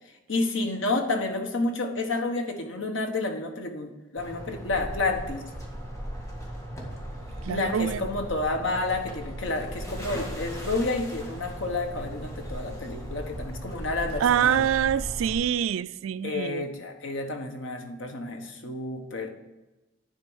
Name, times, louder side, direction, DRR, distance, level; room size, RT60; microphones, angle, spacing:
voice 1, 0.3-5.4 7.5-14.6 16.2-19.3, left 2 dB, 75° left, 1.2 m, -30 dB
sound 1, 4.2-15.3, equal, 15° left, 1.6 m, -37 dB
voice 2, 7.4-8.1 14.2-16.7, right 9 dB, 85° right, 0.3 m, -25 dB
10.5 x 4.5 x 6.3 m
head